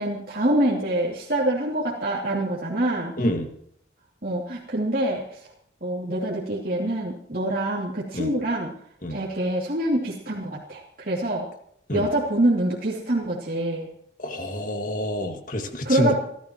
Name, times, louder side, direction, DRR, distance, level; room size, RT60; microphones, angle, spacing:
voice 1, 0.0-3.1 4.2-5.4 5.8-8.7 9.1-11.4 11.9-13.9 15.8-16.1, right 1 dB, 50° right, -6 dB, 2.8 m, -25 dB
voice 2, 3.2-3.5 8.1-8.3 9.0-9.2 11.9-12.1 14.2-16.1, left 1 dB, 45° left, 5 dB, 2.0 m, -27 dB
29.5 x 12.5 x 3.1 m, 0.68 s
head